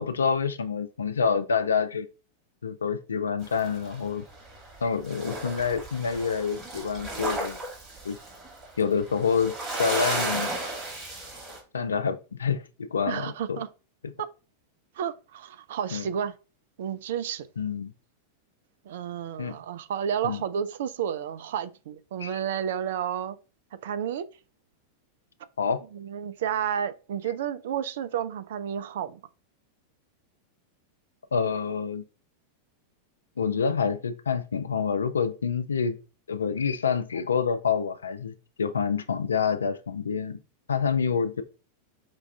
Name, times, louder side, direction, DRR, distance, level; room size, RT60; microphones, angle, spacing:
voice 1, 0.0-2.1 2.6-4.2 4.8-7.6 8.0-8.2 8.8-9.5 9.8-10.5 11.7-13.6 14.0-14.1 15.9-16.0 17.6-17.9 19.4-19.5 20.2-20.4 22.2-22.3 25.6-25.8 31.3-32.0 33.4-36.0 36.3-40.4 40.7-41.4, left 6 dB, 70° left, 0.4 m, -27 dB
sound 1, 3.4-4.8 5.1-11.6, right 2 dB, 25° right, 1.7 m, -34 dB
voice 2, 13.1-13.7 15.0-16.3 16.8-17.5 18.9-23.4 23.8-24.2 25.9-29.2 41.1-41.2, right 9 dB, 55° right, 0.3 m, -31 dB
5.1 x 2.3 x 3.3 m
figure-of-eight pair, 90°, 0 cm